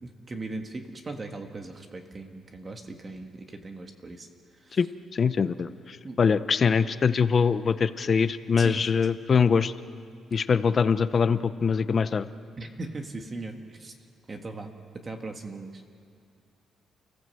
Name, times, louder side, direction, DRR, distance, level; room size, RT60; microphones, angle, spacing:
voice 1, 0.0-4.3 4.5-4.8 6.0-6.2 8.6-9.0 10.3-10.4 12.6-14.0 14.3-15.8, right 2 dB, 30° right, 4 dB, 1.7 m, -39 dB
voice 2, 5.1-9.7 10.3-12.3, left 6 dB, 40° left, 13 dB, 0.7 m, -23 dB
30.0 x 16.0 x 7.9 m, 2.4 s
cardioid pair, 125°, 0 cm